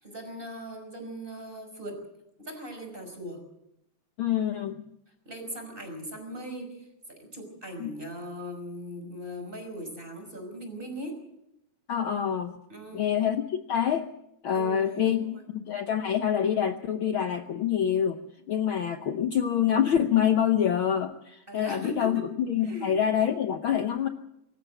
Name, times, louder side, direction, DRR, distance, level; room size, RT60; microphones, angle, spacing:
voice 1, 0.0-2.0 2.4-3.4 5.3-6.9 7.2-11.2 12.7-13.1 14.5-15.4 21.5-22.1 22.6-22.9, equal, 15° right, 4 dB, 5.5 m, -39 dB
voice 2, 4.2-4.8 7.8-7.9 11.9-12.5 12.9-14.1 14.4-15.2 15.5-18.2 18.5-24.1, left 9 dB, 70° left, 7 dB, 1.2 m, -26 dB
24.5 x 14.0 x 8.0 m, 0.81 s
omnidirectional pair, 3.3 m